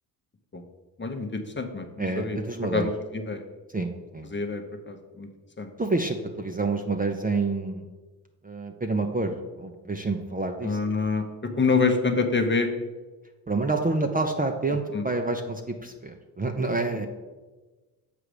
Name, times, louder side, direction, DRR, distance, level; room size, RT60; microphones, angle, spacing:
voice 1, 1.0-2.4 2.7-3.4 4.3-5.3 5.6-5.7 10.6-12.7 14.9-15.0, left 4 dB, 25° left, 5 dB, 0.9 m, -26 dB
voice 2, 2.0-2.9 3.7-4.3 5.8-7.9 8.4-10.8 13.5-17.1, right 3 dB, 15° right, 4 dB, 0.6 m, -28 dB
6.7 x 4.9 x 4.9 m, 1.2 s
hypercardioid pair, 55°, 50 cm